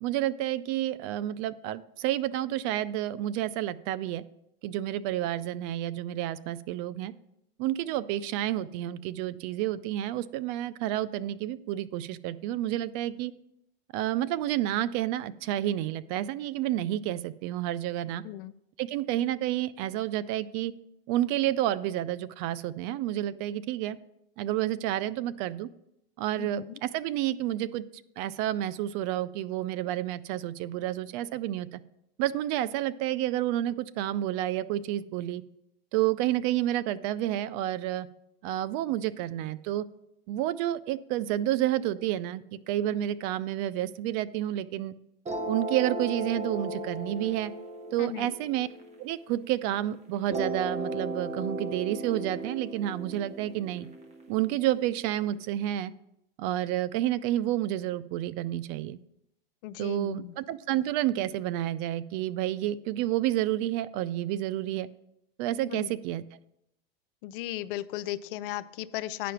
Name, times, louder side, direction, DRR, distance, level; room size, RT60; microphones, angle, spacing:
voice 1, 0.0-4.2 4.6-7.1 7.6-13.3 13.9-18.2 18.8-20.7 21.1-24.0 24.4-25.7 26.2-27.8 28.2-31.8 32.2-35.4 35.9-38.1 38.4-39.8 40.3-44.9 45.5-47.5 47.9-48.7 49.0-53.9 54.3-55.9 56.4-59.0 59.8-64.9 65.4-66.2, right 13 dB, 50° right, 18 dB, 0.4 m, -30 dB
voice 2, 26.4-26.8 42.9-43.0 48.0-48.3 59.6-60.3 65.6-65.9 67.2-69.3, left 14 dB, 65° left, 16 dB, 0.5 m, -36 dB
sound 1, 45.3-49.6 50.3-55.3, right 2 dB, 20° right, 1.2 m, -36 dB
9.9 x 5.1 x 5.7 m, 0.81 s
supercardioid pair, 125°, 30 cm